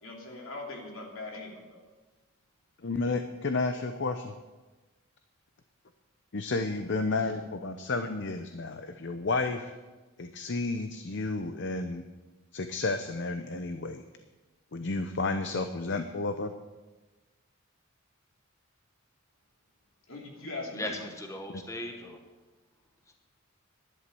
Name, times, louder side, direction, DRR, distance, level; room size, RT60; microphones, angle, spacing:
voice 1, 0.0-1.8 20.1-21.0, left 2 dB, 70° left, 0 dB, 3.0 m, -40 dB
voice 2, 2.8-4.3 6.3-9.8 10.2-12.0 12.5-14.0 14.7-16.5, left 3 dB, 55° left, 8 dB, 0.7 m, -31 dB
voice 3, 20.7-22.2 23.1-23.2, left 1 dB, 15° left, 3 dB, 1.1 m, -38 dB
11.5 x 11.0 x 6.9 m, 1.2 s
head